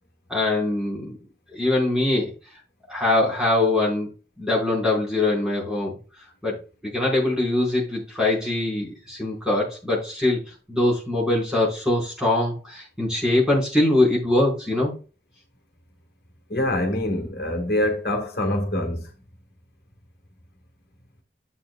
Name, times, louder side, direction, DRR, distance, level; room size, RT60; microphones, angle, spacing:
voice 1, 0.3-1.2 1.5-2.3 2.9-4.1 4.4-6.0 6.4-6.5 6.8-10.4 10.7-14.9, left 2 dB, 5° right, 4.5 m, -22 dB
voice 2, 16.5-19.1, left 1 dB, 60° left, 1.6 m, -25 dB
12.0 x 8.1 x 2.3 m
head